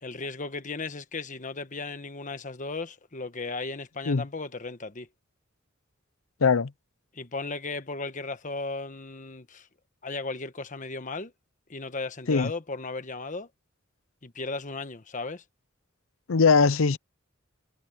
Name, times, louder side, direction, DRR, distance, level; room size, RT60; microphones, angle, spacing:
voice 1, 0.0-5.1 7.1-9.7 10.0-11.3 11.7-13.5 14.2-15.4, left 3 dB, 40° left, 1.3 m, -36 dB
voice 2, 16.3-17.0, left 5 dB, 80° left, 0.6 m, -21 dB
head